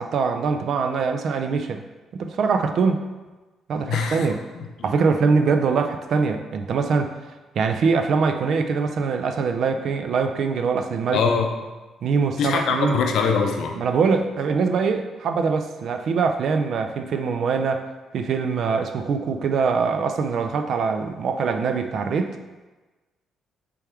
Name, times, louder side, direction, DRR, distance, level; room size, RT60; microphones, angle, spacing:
voice 1, 0.0-1.8 2.1-3.0 3.7-4.4 4.8-7.1 7.6-11.2 12.0-13.0 13.8-17.9 18.1-22.4, right 5 dB, 65° right, 6 dB, 0.4 m, -23 dB
voice 2, 3.9-4.3 4.6-4.9 11.1-11.5 12.4-13.7, left 5 dB, 75° left, 3 dB, 0.5 m, -23 dB
3.4 x 3.4 x 4.4 m, 1.2 s
cardioid pair, 80°, 0 cm